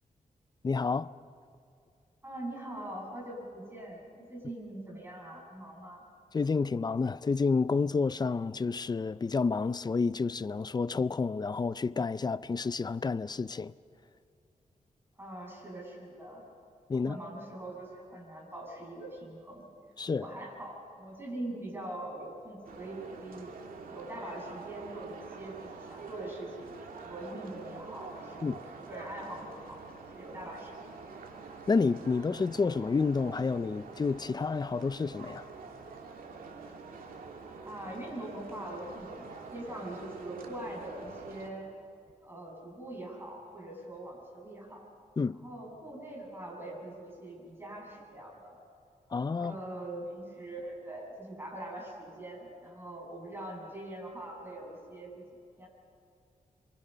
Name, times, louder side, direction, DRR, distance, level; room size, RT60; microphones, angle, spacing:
voice 1, 0.6-1.1 6.3-13.7 16.9-17.2 20.0-20.3 28.4-28.6 31.7-35.4 45.2-45.4 49.1-49.6, left 4 dB, 30° left, 0.5 m, -29 dB
voice 2, 2.2-6.0 15.2-16.4 16.9-19.7 20.2-23.5 23.9-31.0 37.6-41.7 42.2-44.9 45.3-48.5 49.4-55.2 55.6-55.7, right 1 dB, 15° right, 7.6 m, -43 dB
sound 1, 22.6-41.5, right 4 dB, 90° right, 2.2 m, -46 dB
27.0 x 23.5 x 5.7 m
wide cardioid pair, 105°, 14 cm